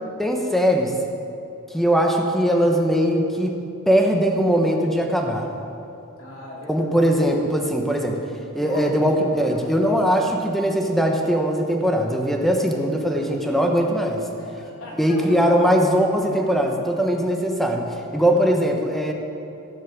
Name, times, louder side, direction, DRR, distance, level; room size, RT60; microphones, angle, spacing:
voice 1, 0.2-0.9 1.7-3.6 3.9-5.5 6.7-8.2 8.5-14.2 15.0-17.8 18.1-19.1, equal, ahead, 2 dB, 1.1 m, -20 dB
voice 2, 6.2-7.0 8.6-9.7 10.0-10.2 12.5-13.3 14.4-15.4 16.3-16.6, left 1 dB, 65° left, -5 dB, 2.9 m, -38 dB
16.0 x 6.5 x 7.2 m, 2.8 s
head